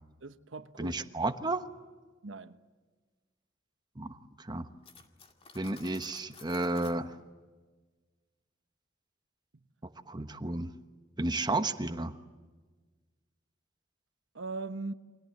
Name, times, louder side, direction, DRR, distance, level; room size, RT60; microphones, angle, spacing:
voice 1, 0.2-1.1 2.2-2.6 14.3-14.9, right 3 dB, 85° right, 1.1 m, -40 dB
voice 2, 0.8-1.7 4.0-4.7 5.5-7.1 10.1-10.7 11.2-12.1, right 2 dB, 20° right, 1.2 m, -32 dB
Cutlery silverware, 4.8-7.0, left 4 dB, 30° left, 2.2 m, -53 dB
29.5 x 24.5 x 7.8 m
head